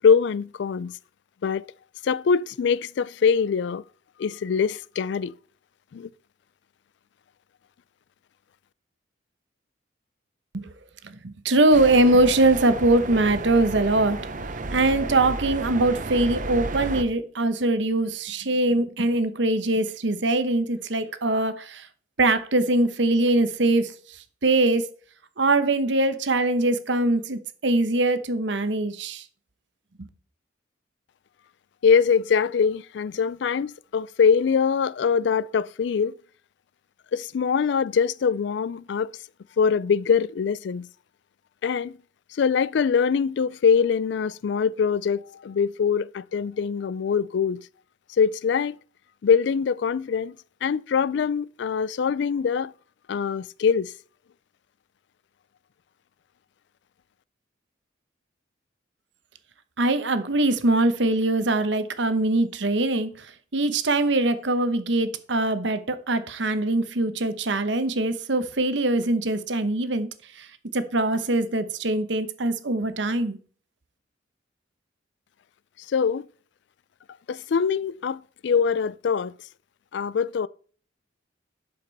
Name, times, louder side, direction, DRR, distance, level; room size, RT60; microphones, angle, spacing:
voice 1, 0.0-0.9 1.4-1.6 2.0-3.8 4.2-5.3 5.9-6.1 31.8-36.1 37.1-39.1 39.6-40.9 41.6-41.9 42.4-47.6 48.2-48.8 49.2-50.3 50.6-52.7 53.1-53.9 75.9-76.3 77.3-79.3 79.9-80.5, left 6 dB, 65° left, 0.3 m, -23 dB
voice 2, 11.0-14.2 14.7-21.9 22.2-24.9 25.4-29.2 59.8-70.1 70.4-70.5 70.7-73.4, right 2 dB, 70° right, 1.0 m, -22 dB
sound 1, 11.7-17.0, right 2 dB, 45° right, 0.8 m, -33 dB
11.5 x 5.2 x 4.0 m
head